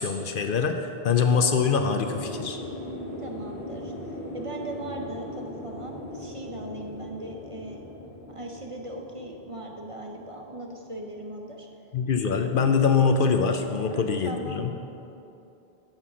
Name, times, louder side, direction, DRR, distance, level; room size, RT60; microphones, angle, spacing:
voice 1, 0.0-2.6 11.9-14.7, left 5 dB, 65° left, 5 dB, 0.7 m, -24 dB
sound 1, 2.0-11.3 11.6-11.7, left 1 dB, 85° left, 1.4 m, -39 dB
voice 2, 3.0-7.8 8.3-11.7 13.9-14.7, right 1 dB, 35° right, 1 dB, 0.7 m, -39 dB
9.0 x 5.7 x 6.1 m, 2.8 s
omnidirectional pair, 1.0 m